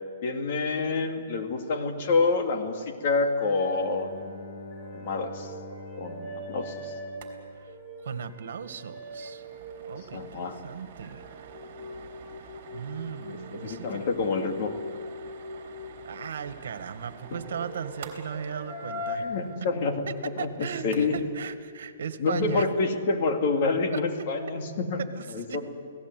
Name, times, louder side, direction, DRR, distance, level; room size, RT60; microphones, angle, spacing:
voice 1, 0.2-4.2 4.9-5.5 6.0-6.9 10.1-10.6 13.5-14.7 19.2-20.0 20.4-21.2 22.2-25.0 25.3-25.7, left 4 dB, 45° left, 5 dB, 2.5 m, -27 dB
sound 1, 3.4-10.6 11.0-16.2 17.1-19.2, left 1 dB, 5° left, 5.2 m, -41 dB
Bowed string instrument, 3.6-8.4, left 2 dB, 70° left, 2.8 m, -45 dB
sound 2, 7.1-7.4 7.6-7.7 8.0-8.2 8.6-21.3, right 7 dB, 45° right, 3.6 m, -49 dB
voice 2, 8.0-9.5 9.9-11.2 12.7-14.0 16.1-19.3 20.1-22.7 23.9-24.3 25.0-25.7, right 7 dB, 70° right, 10 dB, 1.9 m, -37 dB
29.0 x 18.0 x 9.5 m, 2.2 s
hypercardioid pair, 165°, 0 cm